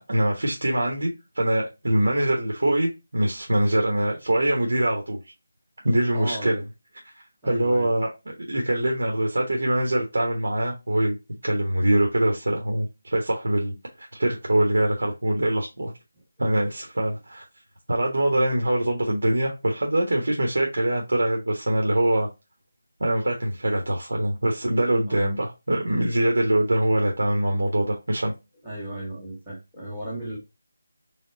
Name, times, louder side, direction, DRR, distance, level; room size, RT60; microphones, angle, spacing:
voice 1, 0.1-5.3 5.8-6.6 7.4-11.2 11.4-15.9 16.4-17.4 17.9-22.3 23.0-28.3, right 1 dB, 80° right, 1.2 m, -23 dB
voice 2, 6.1-6.6 7.4-7.9 25.1-25.3 28.6-30.4, right 1 dB, 5° right, 0.9 m, -35 dB
3.7 x 3.4 x 2.7 m
figure-of-eight pair, 180°, 0 cm